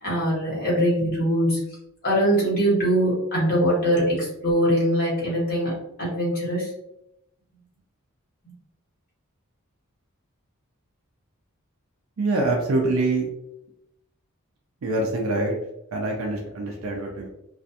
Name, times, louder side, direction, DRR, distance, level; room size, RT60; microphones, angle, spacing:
voice 1, 0.0-1.6 2.0-6.7, equal, 45° left, -5 dB, 1.1 m, -22 dB
voice 2, 12.2-13.3 14.8-15.6 15.9-17.3, right 2 dB, 70° right, 1 dB, 0.4 m, -25 dB
2.4 x 2.3 x 2.7 m, 0.84 s
head